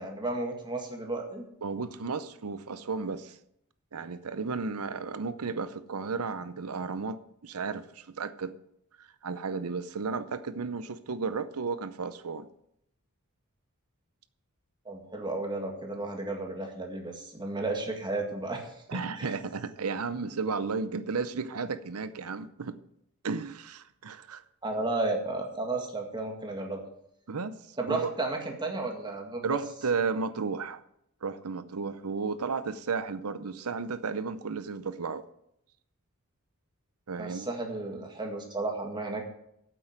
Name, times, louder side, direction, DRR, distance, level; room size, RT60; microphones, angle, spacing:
voice 1, 0.0-1.5 14.9-18.7 19.2-19.3 24.6-26.8 27.8-29.6 37.2-39.2, right 2 dB, 20° right, 2 dB, 1.9 m, -33 dB
voice 2, 1.6-3.4 3.9-8.6 9.0-12.5 18.9-22.8 23.2-24.4 27.3-27.5 27.9-28.1 29.4-30.8 31.2-35.2 37.1-37.5, right 4 dB, 85° right, 13 dB, 0.7 m, -33 dB
8.9 x 7.7 x 7.7 m, 0.76 s
head